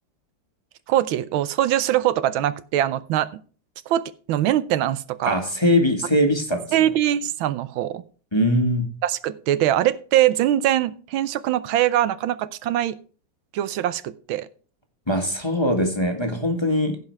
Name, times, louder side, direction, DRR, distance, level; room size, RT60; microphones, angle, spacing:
voice 1, 0.9-3.4 3.9-4.0 4.3-5.4 6.7-8.0 9.0-13.0 13.5-14.5, right 12 dB, 85° right, 15 dB, 1.5 m, -22 dB
voice 2, 5.2-6.6 8.3-8.8 15.1-17.0, left 1 dB, 15° left, 4 dB, 1.5 m, -21 dB
15.5 x 5.5 x 4.6 m, 0.40 s
omnidirectional pair, 2.1 m